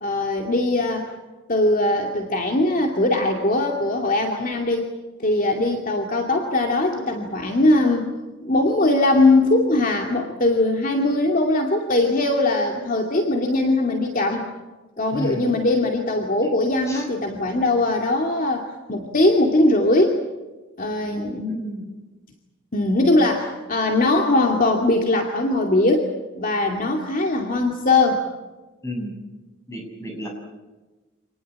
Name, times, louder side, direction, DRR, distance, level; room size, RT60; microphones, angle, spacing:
voice 1, 0.0-1.1 1.5-4.9 5.2-8.1 8.4-14.5 15.0-20.2 20.8-21.6 22.7-28.2, left 2 dB, 40° left, 2 dB, 2.5 m, -20 dB
voice 2, 15.1-15.5 16.9-17.1 21.5-21.9 28.8-29.2 29.7-30.3, equal, 15° left, 2 dB, 7.3 m, -32 dB
27.5 x 19.5 x 8.8 m, 1.2 s
head